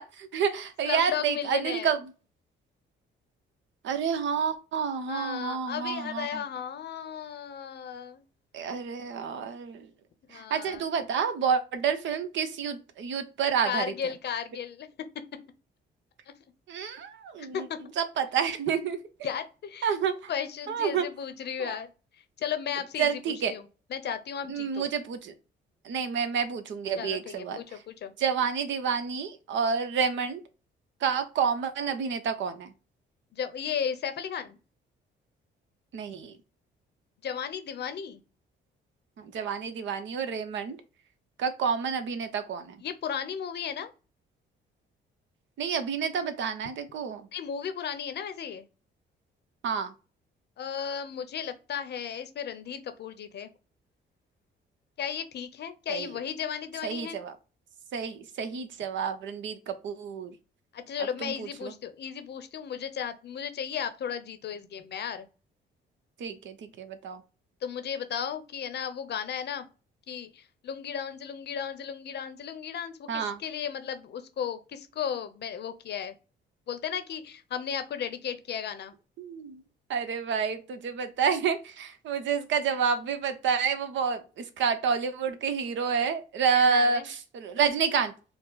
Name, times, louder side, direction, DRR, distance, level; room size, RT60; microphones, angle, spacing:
voice 1, 0.0-2.0 3.8-6.4 8.5-9.9 10.3-13.8 16.7-17.7 18.0-19.0 19.8-20.3 20.7-21.1 21.6-21.7 23.0-23.5 24.5-25.3 25.8-27.8 28.2-30.4 31.0-32.7 35.9-36.4 39.2-40.8 41.4-42.8 45.6-47.3 49.6-49.9 55.9-56.1 56.8-57.3 57.9-60.3 61.2-61.7 66.2-67.2 73.1-73.4 79.2-79.6 79.9-88.1, right 6 dB, 70° right, 0.8 m, -29 dB
voice 2, 0.8-1.9 5.0-8.2 10.3-10.8 13.6-14.9 17.4-17.8 19.2-19.9 20.3-21.9 22.4-23.2 23.5-24.9 27.0-28.1 33.3-34.6 37.2-38.2 42.8-43.9 47.3-48.7 50.6-53.5 55.0-57.2 60.7-65.3 67.6-69.7 70.1-76.2 76.7-78.9 86.5-87.1, left 8 dB, 60° left, 0.7 m, -35 dB
4.5 x 2.0 x 3.9 m
cardioid pair, 90°, 20 cm